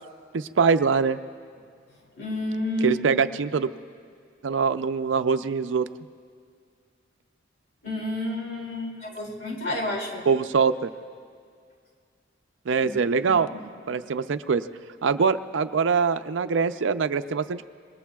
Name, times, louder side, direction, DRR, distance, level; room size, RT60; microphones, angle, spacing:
voice 1, 0.3-1.2 2.8-3.7 4.4-5.9 10.3-10.9 12.7-13.5 13.9-14.6 15.0-17.7, right 5 dB, 85° right, 10 dB, 0.5 m, -23 dB
voice 2, 2.2-3.3 7.8-10.2 12.8-13.0 13.3-13.7, left 1 dB, 55° left, -1 dB, 2.7 m, -31 dB
26.5 x 22.0 x 2.3 m, 2.2 s
head